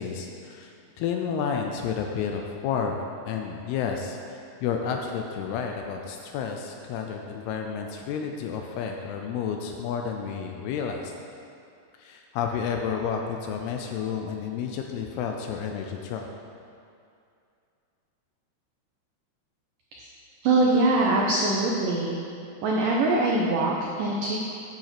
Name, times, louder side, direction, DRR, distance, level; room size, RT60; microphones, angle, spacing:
voice 1, 0.0-11.1 12.0-16.3, left 6 dB, 80° left, 2 dB, 2.4 m, -31 dB
voice 2, 20.4-22.2 22.6-24.4, right 2 dB, 85° right, -2 dB, 1.9 m, -23 dB
9.2 x 7.3 x 5.9 m, 2.5 s
omnidirectional pair, 5.0 m